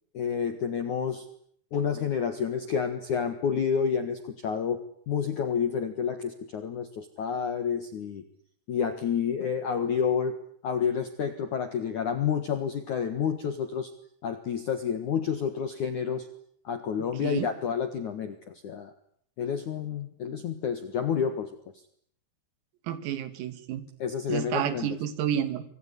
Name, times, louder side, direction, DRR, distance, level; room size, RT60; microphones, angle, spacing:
voice 1, 0.1-1.2 1.7-8.2 8.7-10.4 10.6-13.9 14.2-16.3 16.6-18.9 19.4-21.6 24.0-24.9, left 7 dB, 70° left, 9 dB, 1.9 m, -29 dB
voice 2, 22.8-23.9 24.3-25.6, right 10 dB, 90° right, 12 dB, 5.0 m, -30 dB
26.0 x 22.0 x 10.0 m, 0.65 s
omnidirectional pair, 6.0 m